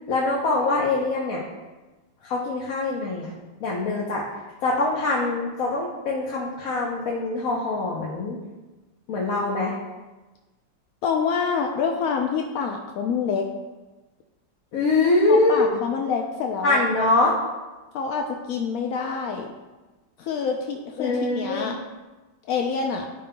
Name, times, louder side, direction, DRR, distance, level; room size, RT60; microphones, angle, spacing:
voice 1, 0.1-1.4 2.2-3.3 3.6-4.2 4.6-8.4 9.1-9.7 14.7-15.6 16.6-17.3 21.0-21.7, left 2 dB, 55° left, -4 dB, 1.1 m, -23 dB
voice 2, 11.0-13.5 15.3-16.9 17.9-19.5 20.2-21.8 22.5-23.1, left 6 dB, 80° left, 2 dB, 0.8 m, -26 dB
11.0 x 5.2 x 2.2 m, 1.2 s
omnidirectional pair, 2.0 m